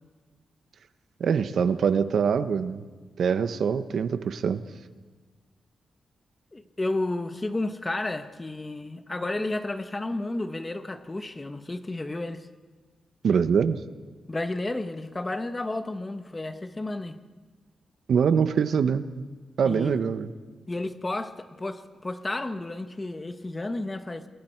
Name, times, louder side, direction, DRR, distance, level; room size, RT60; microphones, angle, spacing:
voice 1, 1.2-2.8 3.2-4.6 13.2-13.8 18.1-19.2 19.6-20.3, right 6 dB, 70° right, 11 dB, 1.0 m, -24 dB
voice 2, 6.5-12.5 14.3-17.2 19.6-20.0 20.7-24.3, left 2 dB, 20° left, 9 dB, 1.2 m, -32 dB
29.0 x 21.5 x 4.6 m, 1.4 s
wide cardioid pair, 115°, 0 cm